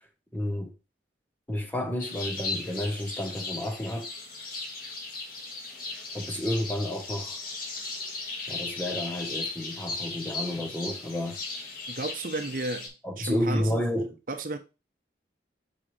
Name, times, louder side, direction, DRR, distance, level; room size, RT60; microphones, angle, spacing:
voice 1, 0.3-0.7 1.5-4.1 6.1-7.4 8.5-11.4 13.0-14.1, left 1 dB, 10° left, 1.1 m, -31 dB
sound 1, 2.0-12.9, left 3 dB, 55° left, 1.9 m, -37 dB
voice 2, 11.9-13.8 14.3-14.6, right 2 dB, 50° right, 0.8 m, -33 dB
7.5 x 5.0 x 3.2 m
head